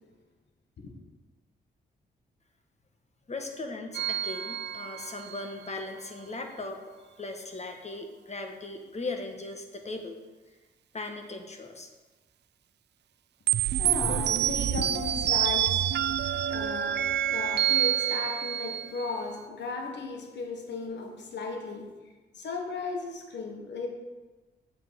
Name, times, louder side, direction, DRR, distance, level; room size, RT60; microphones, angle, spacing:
voice 1, 3.3-6.8 7.2-10.2 10.9-11.9, left 2 dB, 35° left, 4 dB, 1.4 m, -38 dB
sound 1, 3.9-5.5 13.5-19.2, right 11 dB, 70° right, 0.4 m, -28 dB
voice 2, 13.7-22.0 22.3-23.9, left 4 dB, 70° left, 2 dB, 1.6 m, -36 dB
7.8 x 7.5 x 5.2 m, 1.2 s
cardioid pair, 60°, 19 cm